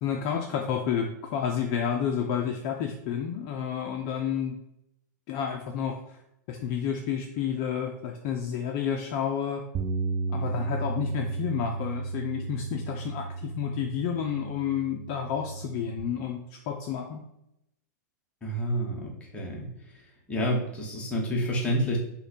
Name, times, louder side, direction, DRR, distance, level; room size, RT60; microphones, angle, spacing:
voice 1, 0.0-4.6 5.3-6.0 6.5-9.6 10.3-17.2, left 8 dB, 40° left, 2 dB, 0.4 m, -30 dB
Bass guitar, 9.7-16.0, right 3 dB, 20° right, 0.4 m, -34 dB
voice 2, 18.4-19.7 20.3-22.0, equal, 10° left, -3 dB, 1.0 m, -29 dB
5.4 x 2.2 x 4.2 m, 0.82 s
supercardioid pair, 155°, 10 cm